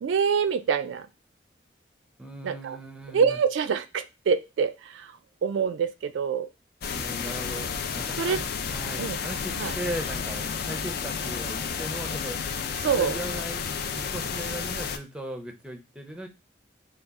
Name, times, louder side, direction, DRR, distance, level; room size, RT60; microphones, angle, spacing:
voice 1, 0.0-1.1 2.4-2.8 3.1-5.1 5.4-6.5 8.2-8.4 9.0-9.2 9.6-9.7 12.8-13.2, right 6 dB, 75° right, 10 dB, 0.3 m, -25 dB
voice 2, 2.2-3.4 6.9-12.4 12.9-13.6 14.0-16.3, right 1 dB, 5° right, 5 dB, 0.5 m, -38 dB
sound 1, 6.8-15.0, left 6 dB, 55° left, 0.4 m, -31 dB
4.0 x 2.3 x 3.4 m, 0.26 s
head